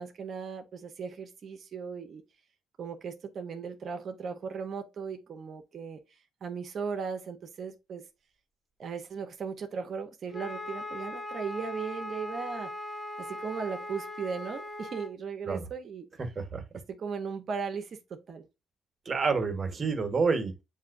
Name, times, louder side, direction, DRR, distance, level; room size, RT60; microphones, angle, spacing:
voice 1, 0.0-2.2 2.8-8.0 8.8-12.7 13.2-16.1 16.7-18.4, right 5 dB, 55° right, 0.6 m, -37 dB
Wind instrument woodwind instrument, 10.3-15.1, left 1 dB, 10° left, 1.3 m, -39 dB
voice 2, 16.2-16.6 19.0-20.5, right 4 dB, 35° right, 1.1 m, -28 dB
7.1 x 2.6 x 2.4 m
cardioid pair, 90°, 0 cm